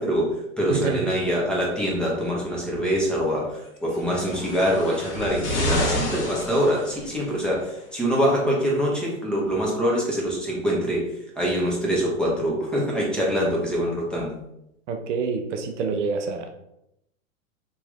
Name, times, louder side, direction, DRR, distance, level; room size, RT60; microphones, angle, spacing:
voice 1, 0.0-11.1 11.4-14.3, equal, ahead, -4 dB, 0.8 m, -24 dB
voice 2, 0.7-1.1 14.9-16.5, right 5 dB, 60° right, 5 dB, 0.6 m, -27 dB
sound 1, 4.0-7.4 8.3-8.4, left 1 dB, 55° left, 1.4 m, -29 dB
3.0 x 2.6 x 3.3 m, 0.82 s
hypercardioid pair, 100°, 41 cm